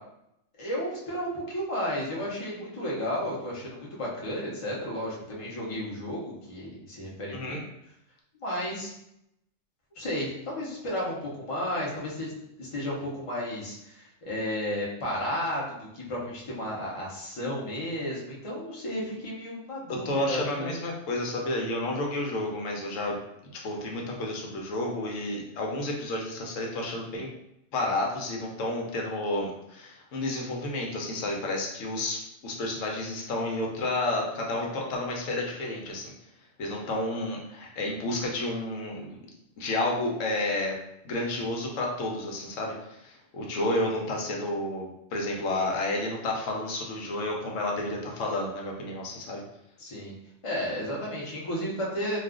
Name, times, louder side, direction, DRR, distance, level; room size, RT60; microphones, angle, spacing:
voice 1, 0.6-7.6 8.4-8.9 10.0-12.3 12.6-20.8 49.8-50.1 50.4-52.2, equal, 30° left, -4 dB, 0.7 m, -33 dB
voice 2, 19.9-23.1 23.6-27.3 27.7-36.1 36.6-39.2 39.6-40.7 41.0-49.4, left 2 dB, 80° left, 0 dB, 1.0 m, -31 dB
2.4 x 2.3 x 3.6 m, 0.81 s
omnidirectional pair, 1.3 m